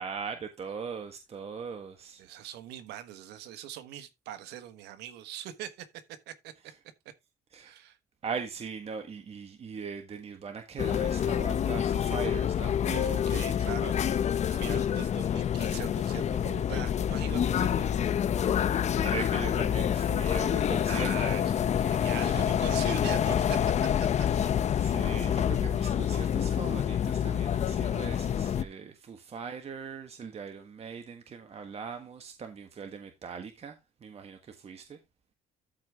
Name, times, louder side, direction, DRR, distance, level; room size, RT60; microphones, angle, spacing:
voice 1, 0.0-2.2 7.5-7.7 8.2-12.8 18.9-21.3 22.2-22.5 24.3-24.5 24.8-35.0, right 6 dB, 35° right, 1.5 m, -40 dB
voice 2, 2.2-6.5 7.6-8.0 12.8-14.1 14.4-18.1 20.9-24.3 28.8-28.9, right 11 dB, 90° right, 1.3 m, -42 dB
sound 1, 10.8-28.6, left 9 dB, 45° left, 0.7 m, -27 dB
13.0 x 4.8 x 3.5 m
cardioid pair, 110°, 17 cm